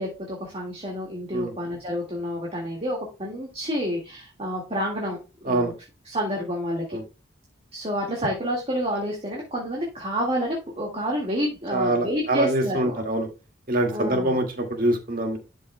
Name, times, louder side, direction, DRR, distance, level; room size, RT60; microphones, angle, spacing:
voice 1, 0.0-5.7 6.1-7.0 7.7-13.0 13.9-14.3, equal, 30° right, -2 dB, 1.9 m, -29 dB
voice 2, 11.7-13.3 13.7-15.4, right 1 dB, 45° right, 3 dB, 2.0 m, -24 dB
11.5 x 5.7 x 2.2 m, 0.30 s
head